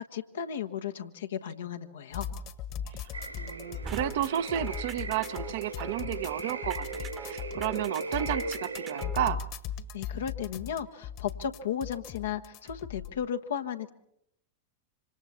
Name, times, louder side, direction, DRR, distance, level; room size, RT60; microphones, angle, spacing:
voice 1, 0.0-2.3 9.9-13.9, left 8 dB, 65° left, 7 dB, 1.2 m, -35 dB
sound 1, 2.1-13.1, left 8 dB, 40° left, 1.6 m, -38 dB
voice 2, 2.9-9.4, right 11 dB, 55° right, 10 dB, 1.0 m, -32 dB
sound 2, 3.1-9.1, right 3 dB, 80° right, 3.8 m, -39 dB
sound 3, 3.8-9.3, right 6 dB, 20° right, 1.2 m, -43 dB
26.5 x 25.5 x 4.3 m, 0.75 s
figure-of-eight pair, 90°, 0 cm